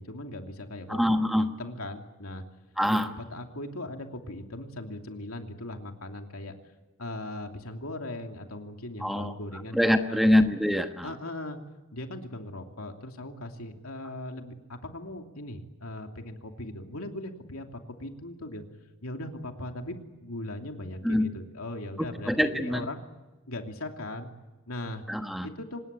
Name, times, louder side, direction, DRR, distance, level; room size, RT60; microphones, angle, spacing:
voice 1, 0.0-2.4 2.9-6.5 7.0-9.8 10.1-10.4 11.0-11.6 11.9-18.6 19.0-23.0 23.5-24.3 24.7-25.0 25.4-25.8, left 1 dB, 80° left, 4 dB, 2.9 m, -39 dB
voice 2, 0.9-1.5 2.8-3.1 9.0-9.3 9.7-11.1 21.0-21.3 22.3-22.9 25.1-25.5, left 1 dB, ahead, 6 dB, 1.2 m, -24 dB
25.5 x 20.5 x 9.0 m, 1.2 s
head